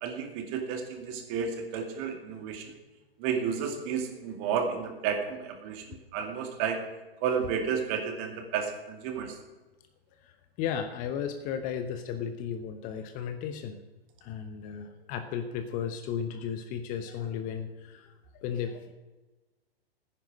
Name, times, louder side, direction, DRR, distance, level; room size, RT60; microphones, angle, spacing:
voice 1, 0.0-2.7 3.2-6.8 7.2-9.4, right 6 dB, 35° right, 4 dB, 2.4 m, -32 dB
voice 2, 10.2-13.8 14.2-18.9, left 8 dB, 25° left, 8 dB, 0.9 m, -35 dB
14.0 x 10.0 x 6.3 m, 1.2 s
figure-of-eight pair, 115°, 31 cm